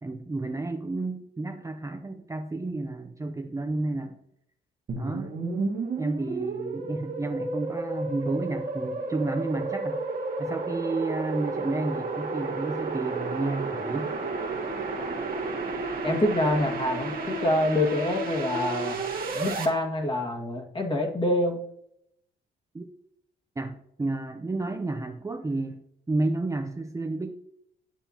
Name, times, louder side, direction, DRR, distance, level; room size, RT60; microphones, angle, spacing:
voice 1, 0.0-4.2 4.9-5.3 6.0-10.1 10.4-14.1 22.7-22.8 23.6-25.8 26.1-27.3, right 2 dB, 15° right, 4 dB, 0.7 m, -31 dB
sound 1, 4.9-19.7, right 3 dB, 50° right, 1.8 m, -32 dB
voice 2, 16.0-19.0 19.3-21.6, left 1 dB, 25° left, 1 dB, 1.9 m, -26 dB
9.0 x 7.9 x 2.9 m, 0.73 s
cardioid pair, 90°, 20 cm